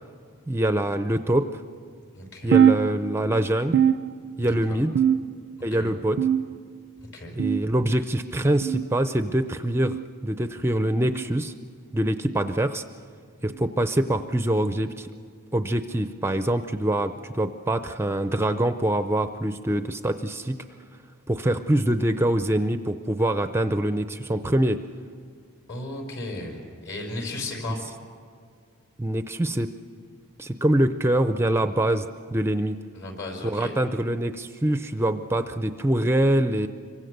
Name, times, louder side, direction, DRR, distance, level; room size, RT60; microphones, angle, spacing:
voice 1, 0.5-1.6 2.4-3.9 4.4-4.9 5.6-6.2 7.4-10.0 10.2-11.5 11.9-12.8 13.4-15.1 15.5-20.6 21.3-24.8 29.0-29.7 30.4-32.8 33.4-36.7, right 1 dB, 10° right, 9 dB, 0.5 m, -24 dB
voice 2, 2.2-2.6 4.4-4.8 5.7-5.9 7.1-7.4 25.7-27.8 32.9-33.7, left 2 dB, 55° left, 2 dB, 5.4 m, -35 dB
sound 1, 2.5-3.4 3.7-4.5 5.0-5.6 6.2-6.8 7.4-7.8 8.6-8.9 9.8-10.1 11.1-11.3 12.3-12.5 13.5-13.7 14.7-14.9 15.9-16.0 17.2-17.3, right 8 dB, 55° right, 0.5 m, -23 dB
26.5 x 24.0 x 6.7 m, 2.1 s
head